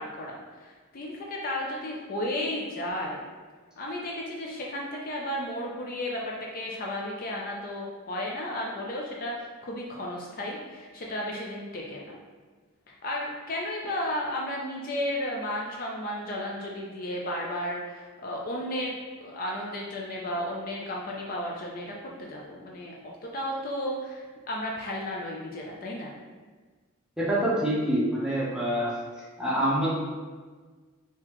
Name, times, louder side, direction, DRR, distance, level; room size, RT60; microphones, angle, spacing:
voice 1, 0.0-3.3 3.8-12.2 12.9-18.9 19.2-26.1, left 1 dB, 40° left, -2 dB, 0.4 m, -33 dB
voice 2, 27.2-29.0 29.4-29.9, right 1 dB, 5° right, -8 dB, 0.8 m, -26 dB
3.8 x 2.8 x 3.0 m, 1.4 s
head